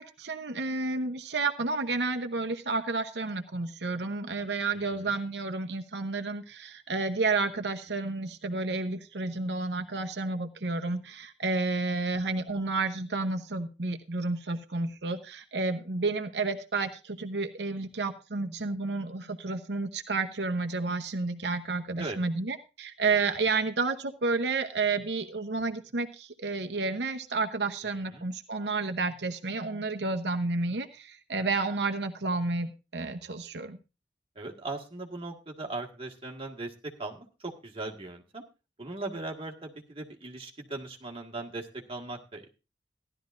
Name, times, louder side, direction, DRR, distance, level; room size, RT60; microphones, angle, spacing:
voice 1, 0.0-33.8, right 3 dB, 75° right, 6 dB, 0.9 m, -31 dB
voice 2, 34.4-38.4 38.8-42.5, right 2 dB, 30° right, 1 dB, 1.8 m, -39 dB
15.5 x 12.0 x 2.6 m, 0.29 s
head